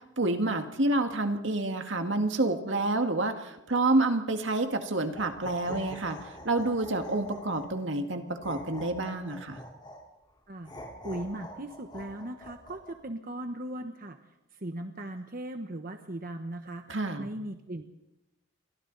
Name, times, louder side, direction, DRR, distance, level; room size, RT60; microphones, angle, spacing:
voice 1, 0.2-9.6 16.9-17.3, right 2 dB, 70° right, 5 dB, 2.0 m, -28 dB
sound 1, 5.0-7.9 8.4-10.0 10.6-12.9, left 1 dB, 25° left, 4.0 m, -45 dB
voice 2, 10.5-14.2 14.5-17.9, right 1 dB, 45° right, 6 dB, 1.2 m, -38 dB
29.0 x 24.0 x 4.1 m, 0.94 s
head